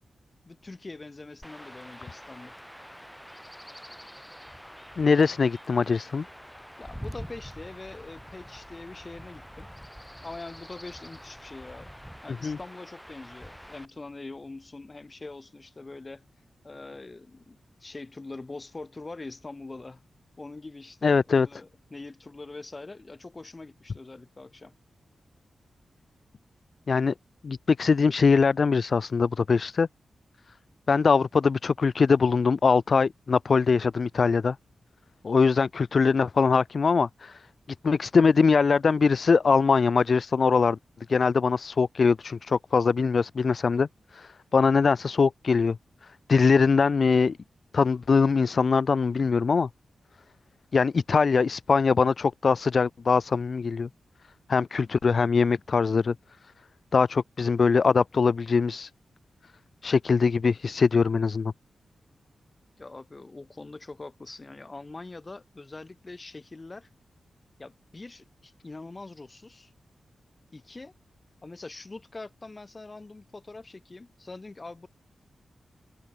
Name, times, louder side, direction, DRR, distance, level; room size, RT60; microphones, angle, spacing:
voice 1, 0.4-2.6 6.8-9.7 10.2-11.9 12.2-16.2 16.6-20.0 20.4-24.7 62.8-66.9 67.6-69.7 70.5-70.9 71.4-74.9, left 3 dB, 30° left, 6.2 m, -43 dB
Chirp tweet / Wind / Stream, 1.4-13.9, equal, ahead, 4.6 m, -45 dB
voice 2, 5.0-6.2 12.4-12.6 21.0-21.5 26.9-27.1 27.4-29.9 30.9-34.6 35.2-37.4 37.8-40.8 41.1-43.9 44.1-45.8 46.3-47.4 47.7-49.7 50.7-53.9 54.5-56.1 56.9-58.9 59.8-61.5, left 5 dB, 55° left, 0.4 m, -22 dB
cardioid pair, 85°, 0 cm